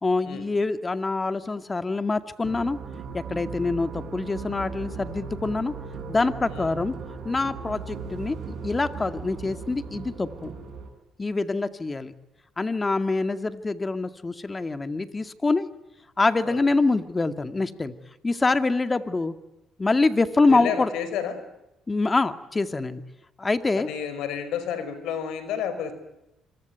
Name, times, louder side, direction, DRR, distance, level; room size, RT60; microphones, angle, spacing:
voice 1, 0.0-2.8 3.1-5.7 6.1-6.9 7.2-10.5 11.2-12.1 12.6-15.7 16.2-17.9 18.2-19.3 19.8-20.9 21.9-23.0 23.4-23.9, left 3 dB, 25° left, 10 dB, 2.2 m, -25 dB
sound 1, 2.4-10.9, right 5 dB, 65° right, 8.0 m, -37 dB
voice 2, 20.5-21.4 23.7-25.9, left 8 dB, 80° left, 12 dB, 5.0 m, -30 dB
26.0 x 23.5 x 9.4 m, 0.91 s
supercardioid pair, 75°, 0 cm